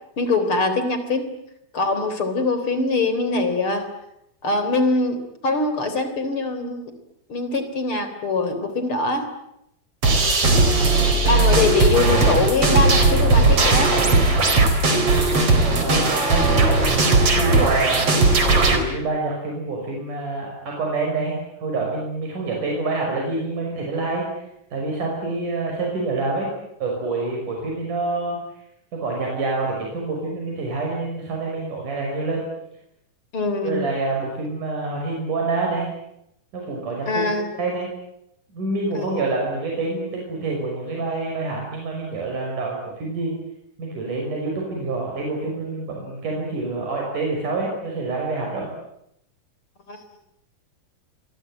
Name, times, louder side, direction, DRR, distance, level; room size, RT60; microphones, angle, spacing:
voice 1, 0.2-1.3 1.7-3.9 4.4-6.9 7.3-9.3 11.0-14.0 33.3-33.9 37.1-37.5 38.9-39.0 49.9-50.0, left 3 dB, 40° left, 9 dB, 4.3 m, -23 dB
sound 1, 10.0-18.8, right 3 dB, 45° right, 5.2 m, -17 dB
voice 2, 10.5-11.3 15.8-16.4 17.1-18.1 18.6-24.3 24.7-26.5 26.8-28.4 28.9-32.5 33.6-35.9 36.5-37.3 37.6-37.9 38.5-43.4 43.8-48.7, right 3 dB, 75° right, 0 dB, 7.4 m, -27 dB
27.0 x 23.5 x 9.1 m, 0.80 s
omnidirectional pair, 3.6 m